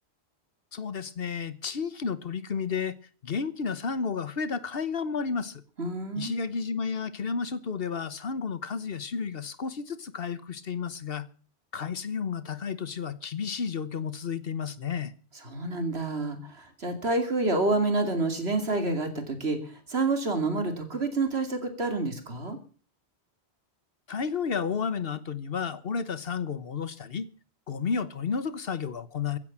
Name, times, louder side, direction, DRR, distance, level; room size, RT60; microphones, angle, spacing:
voice 1, 0.7-2.9 3.2-5.6 6.2-11.3 11.7-15.1 24.1-27.3 27.7-29.4, left 6 dB, 65° left, 1.2 m, -32 dB
voice 2, 5.8-6.4 15.5-22.6, right 2 dB, 75° right, 3.0 m, -28 dB
15.5 x 10.0 x 7.3 m
omnidirectional pair, 1.1 m